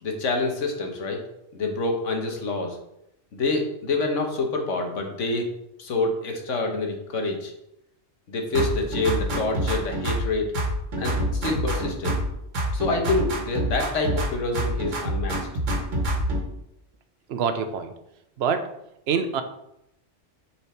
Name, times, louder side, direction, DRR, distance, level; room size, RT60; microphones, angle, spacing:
voice 1, 0.0-1.2 1.5-2.8 3.3-5.5 5.8-7.5 8.3-10.5 11.0-12.1 12.7-15.5, left 3 dB, 80° left, 3 dB, 1.5 m, -27 dB
sound 1, 8.5-10.3 10.5-12.3 12.5-14.3 14.5-16.4, right 1 dB, 80° right, 1.5 m, -26 dB
voice 2, 17.3-17.9 18.4-18.7 19.1-19.4, right 6 dB, 60° right, 8 dB, 0.9 m, -25 dB
6.8 x 4.6 x 4.4 m, 0.82 s
omnidirectional pair, 1.3 m